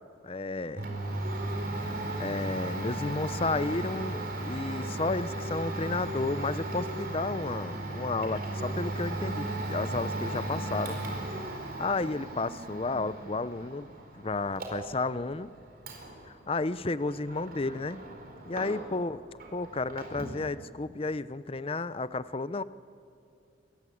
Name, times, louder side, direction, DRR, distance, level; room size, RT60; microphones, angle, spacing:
voice 1, 0.2-0.9 2.2-11.0 11.8-15.5 16.3-18.0 18.5-19.2 19.5-22.6, left 3 dB, 30° left, 15 dB, 0.6 m, -32 dB
Domestic sounds home sounds, 0.7-19.1 19.4-20.4, right 2 dB, 50° right, 5.0 m, -36 dB
28.0 x 24.0 x 8.5 m, 2.6 s
head